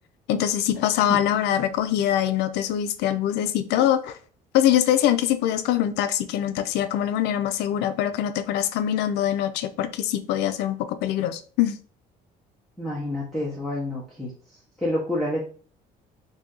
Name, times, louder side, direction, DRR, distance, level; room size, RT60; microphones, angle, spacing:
voice 1, 0.3-4.2 4.5-11.8, left 11 dB, 85° left, 0.4 m, -23 dB
voice 2, 12.8-14.3 14.8-15.5, left 1 dB, ahead, 0.9 m, -28 dB
2.7 x 2.7 x 3.7 m
cardioid pair, 110°, 17 cm